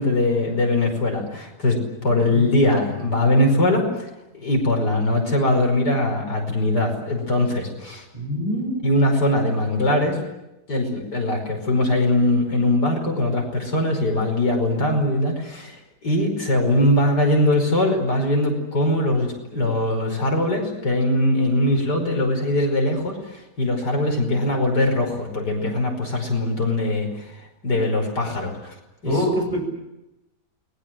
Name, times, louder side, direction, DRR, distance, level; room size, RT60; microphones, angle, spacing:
voice 1, 0.0-3.9 4.3-8.0 8.8-10.2 10.7-15.8 16.0-27.4 27.6-28.8 29.0-29.2, left 1 dB, 75° left, 3 dB, 5.8 m, -21 dB
voice 2, 2.1-2.5 8.1-8.9 29.0-29.7, equal, 20° right, 1 dB, 8.2 m, -25 dB
28.5 x 21.5 x 7.6 m, 0.92 s
omnidirectional pair, 1.8 m